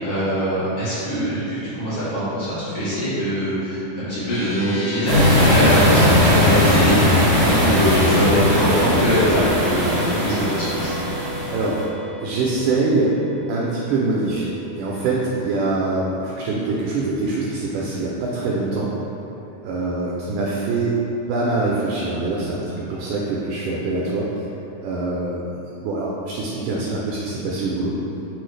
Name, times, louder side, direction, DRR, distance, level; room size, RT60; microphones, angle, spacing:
voice 1, 0.0-10.9, equal, 60° left, -13 dB, 1.4 m, -23 dB
sound 1, 4.3-16.8, right 1 dB, 90° left, 2.5 m, -34 dB
sound 2, 5.1-11.8, left 1 dB, 60° right, 1.1 m, -18 dB
voice 2, 12.2-13.1 13.5-18.9 19.6-21.0 21.3-24.3 24.8-28.0, right 3 dB, 80° right, -5 dB, 1.8 m, -24 dB
6.2 x 2.4 x 3.2 m, 3.0 s
omnidirectional pair, 3.9 m